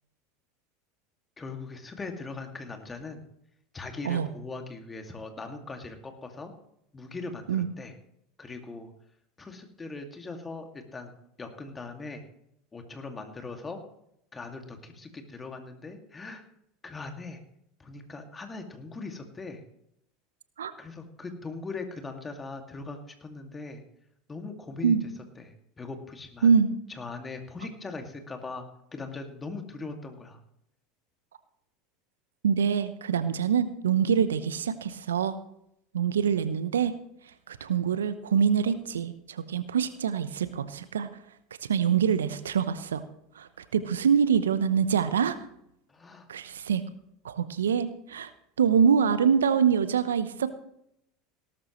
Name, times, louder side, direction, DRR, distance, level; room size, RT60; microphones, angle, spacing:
voice 1, 1.4-3.2 3.7-6.5 6.9-7.9 8.4-8.9 9.4-11.1 11.4-12.2 12.7-13.8 14.3-16.4 16.8-17.4 17.8-19.6 20.8-23.8 24.3-25.0 25.4-26.5 26.9-28.6 28.9-30.4 45.9-46.3, left 3 dB, 20° left, 4 dB, 2.2 m, -40 dB
voice 2, 32.4-35.4 35.9-36.9 37.5-41.1 41.7-43.0 43.4-45.4 46.3-46.8 47.2-48.3 48.6-50.5, right 7 dB, 80° right, 13 dB, 0.8 m, -25 dB
18.0 x 12.5 x 3.1 m, 0.76 s
hypercardioid pair, 80°, 0 cm